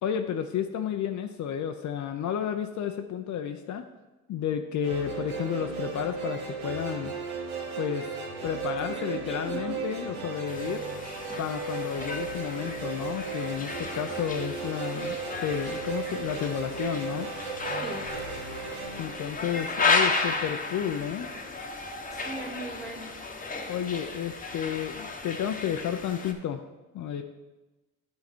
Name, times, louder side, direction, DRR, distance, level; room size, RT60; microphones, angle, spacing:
voice 1, 0.0-3.8 4.3-7.1 7.8-8.1 8.4-10.8 11.4-15.2 15.4-17.3 19.0-21.3 23.7-26.6 26.9-27.2, left 9 dB, 60° left, 6 dB, 0.6 m, -31 dB
sound 1, 4.8-20.1, right 4 dB, 80° right, 1.5 m, -36 dB
voice 2, 8.8-9.8 17.8-18.1 22.1-23.1, right 2 dB, ahead, 2 dB, 1.6 m, -40 dB
sound 2, 10.5-26.3, left 3 dB, 25° left, 1.0 m, -33 dB
9.6 x 4.7 x 4.4 m, 1.1 s
supercardioid pair, 85°, 34 cm